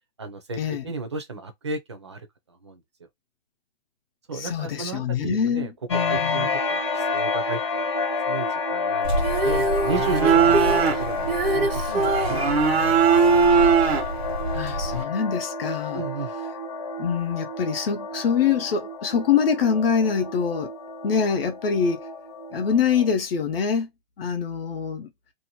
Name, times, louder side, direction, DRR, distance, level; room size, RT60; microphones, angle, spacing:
voice 1, 0.2-2.8 4.3-5.7 6.1-7.8 8.3-12.4 12.7-13.0 15.9-16.3, right 3 dB, 30° right, 0.4 m, -34 dB
voice 2, 4.3-6.5 14.5-16.0 17.0-20.7 21.0-22.1 22.5-23.9 24.2-25.1, left 6 dB, 65° left, 0.7 m, -24 dB
sound 1, 5.9-23.1, left 3 dB, 30° left, 0.5 m, -30 dB
sound 2, 9.0-15.0, right 5 dB, 85° right, 1.0 m, -21 dB
Female singing, 9.2-12.4 14.4-14.5, right 2 dB, 65° right, 0.7 m, -25 dB
2.7 x 2.1 x 2.8 m
hypercardioid pair, 175°, 31 cm